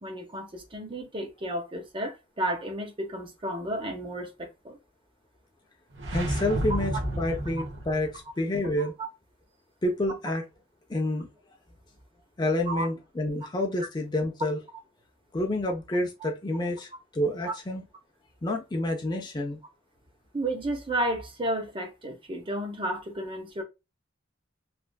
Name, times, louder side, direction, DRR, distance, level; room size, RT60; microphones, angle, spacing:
voice 1, 0.0-4.8 8.8-9.1 12.7-12.9 16.2-16.3 17.4-17.5 20.3-23.6, right 1 dB, 25° right, 0.8 m, -32 dB
sound 1, 5.9-8.2, right 1 dB, 70° right, 1.0 m, -31 dB
voice 2, 6.1-8.9 9.8-10.4 10.9-11.3 12.4-14.6 15.3-17.8 18.4-19.6, left 1 dB, 20° left, 0.5 m, -29 dB
3.2 x 2.4 x 2.2 m
head